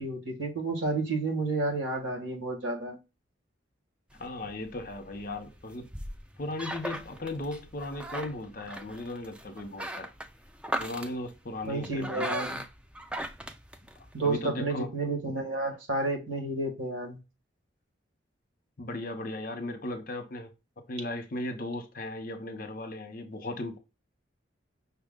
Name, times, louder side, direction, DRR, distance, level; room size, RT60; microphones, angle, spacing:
voice 1, 0.0-3.0 11.6-12.6 14.1-17.2, right 2 dB, 85° right, 1.7 m, -31 dB
sound 1, 4.1-14.4, right 1 dB, 5° right, 0.3 m, -39 dB
voice 2, 4.2-5.9 6.4-10.1 10.8-12.3 14.2-14.9 18.8-23.8, left 1 dB, 45° left, 0.8 m, -37 dB
5.7 x 2.3 x 3.7 m
head